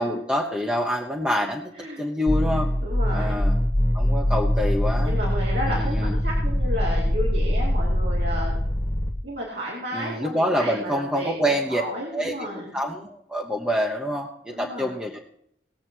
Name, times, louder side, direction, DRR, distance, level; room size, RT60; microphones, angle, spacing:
voice 1, 0.0-2.7 3.1-3.6 3.9-5.1 5.7-6.1 9.9-11.8 12.1-15.2, equal, 5° right, 0 dB, 1.0 m, -26 dB
sound 1, 2.3-9.1, equal, 15° left, 1.5 m, -23 dB
voice 2, 2.8-3.4 5.0-8.5 9.2-12.7 14.5-14.9, equal, 65° right, -5 dB, 2.7 m, -32 dB
19.5 x 7.4 x 4.6 m, 0.73 s
head